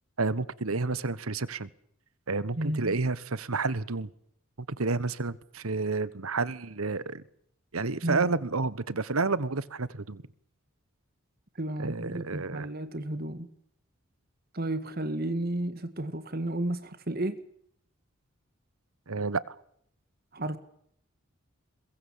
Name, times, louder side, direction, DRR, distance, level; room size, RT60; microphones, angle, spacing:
voice 1, 0.2-1.7 2.3-4.1 4.7-7.2 7.7-10.2 11.8-12.7 19.1-19.5, right 3 dB, 85° right, 1.2 m, -30 dB
voice 2, 2.6-3.0 8.0-8.3 11.6-13.5 14.5-17.4 20.3-20.6, right 1 dB, 45° right, 1.7 m, -32 dB
22.5 x 22.5 x 7.4 m
head